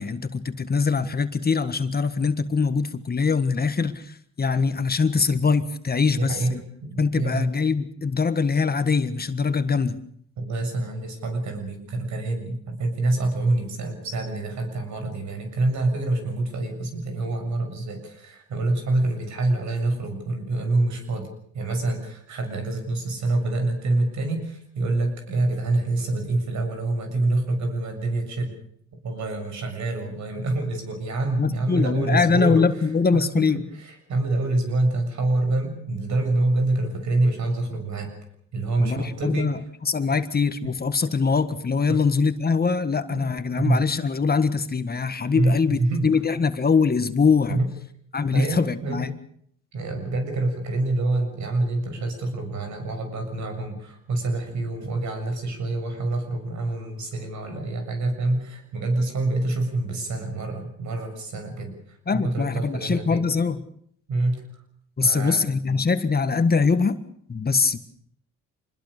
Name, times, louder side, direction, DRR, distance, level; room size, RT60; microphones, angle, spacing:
voice 1, 0.0-6.6 7.0-10.0 31.4-33.6 38.8-47.6 48.1-49.1 62.1-63.6 65.0-67.0 67.3-67.8, left 5 dB, 30° left, 10 dB, 1.6 m, -23 dB
voice 2, 6.2-7.5 10.4-21.3 21.5-28.5 29.0-32.9 33.7-38.1 38.5-39.5 41.9-42.0 43.1-43.3 43.6-43.8 45.3-46.1 47.5-47.7 48.3-49.0 49.7-63.2 64.1-64.4 65.0-65.4, right 2 dB, 70° right, 5 dB, 7.2 m, -26 dB
25.5 x 21.0 x 6.8 m, 0.66 s
cardioid pair, 90°, 30 cm